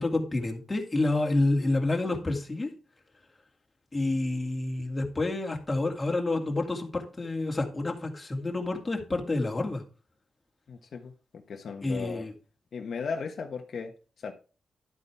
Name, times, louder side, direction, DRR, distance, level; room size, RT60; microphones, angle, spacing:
voice 1, 0.0-2.7 3.9-9.8 11.8-12.3, left 2 dB, 15° left, 1 dB, 2.5 m, -28 dB
voice 2, 10.7-12.3 12.7-14.3, left 5 dB, 55° left, 3 dB, 1.3 m, -37 dB
12.0 x 8.4 x 3.5 m, 0.36 s
wide cardioid pair, 155°, 0 cm